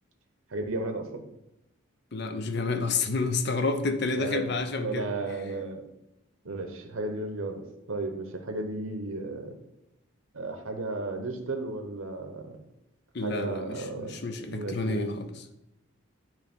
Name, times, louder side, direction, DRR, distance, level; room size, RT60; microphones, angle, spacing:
voice 1, 0.5-1.2 4.1-5.9 6.4-7.6 7.9-9.6 10.3-12.5 13.2-14.2 14.5-15.2, right 2 dB, 75° right, 0.8 m, -34 dB
voice 2, 2.1-5.1 13.1-15.3, left 3 dB, 55° left, 0.6 m, -29 dB
8.7 x 3.2 x 5.2 m
head